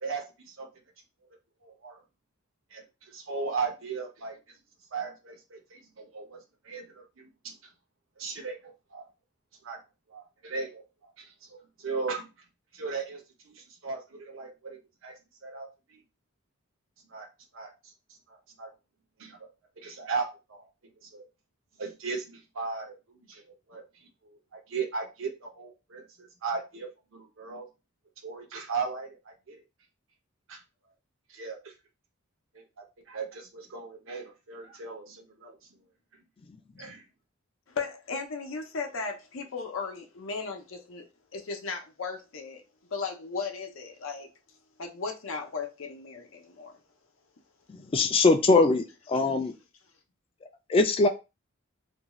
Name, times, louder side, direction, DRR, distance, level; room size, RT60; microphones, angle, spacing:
voice 1, 0.0-0.7 1.6-2.0 2.7-4.4 4.9-7.7 8.2-9.0 9.6-9.8 10.1-10.8 11.2-12.3 12.7-15.1 15.4-16.0 17.1-17.3 17.5-18.7 19.2-19.5 19.8-20.7 21.0-21.3 21.8-27.7 28.2-29.6 30.5-30.6 31.3-31.7 32.5-35.6 36.8-37.0, right 4 dB, 75° right, 0.7 m, -37 dB
voice 2, 37.7-41.0 41.3-42.6 42.9-44.3 44.8-46.7, left 4 dB, 80° left, 0.6 m, -36 dB
voice 3, 47.7-49.5 50.7-51.1, left 3 dB, 25° left, 0.3 m, -22 dB
2.6 x 2.3 x 3.0 m
head